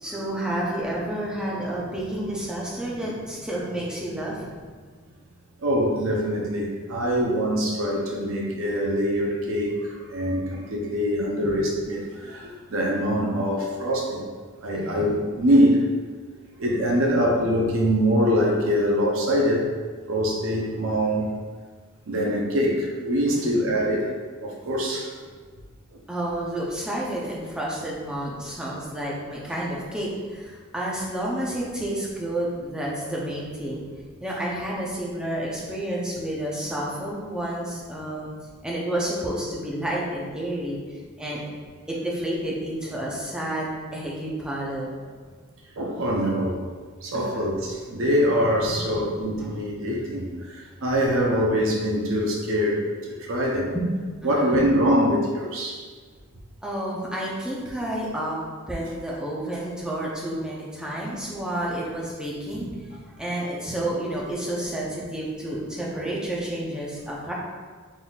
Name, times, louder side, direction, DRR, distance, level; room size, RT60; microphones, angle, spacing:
voice 1, 0.0-4.5 11.4-11.6 14.8-15.1 23.3-23.5 26.1-33.8 34.2-38.3 38.6-41.4 41.9-45.0 45.3-45.4 47.1-47.4 48.8-49.0 49.3-49.5 53.7-53.9 54.2-54.7 56.6-58.4 58.7-67.3, right 1 dB, 5° right, -5 dB, 0.6 m, -30 dB
voice 2, 5.6-14.2 14.6-15.8 16.6-19.7 20.1-21.3 22.1-24.1 24.4-25.1 45.8-46.5 47.0-53.7 54.2-55.9 66.0-66.1, equal, 65° right, -1 dB, 0.6 m, -24 dB
4.0 x 3.8 x 2.3 m, 1.5 s
head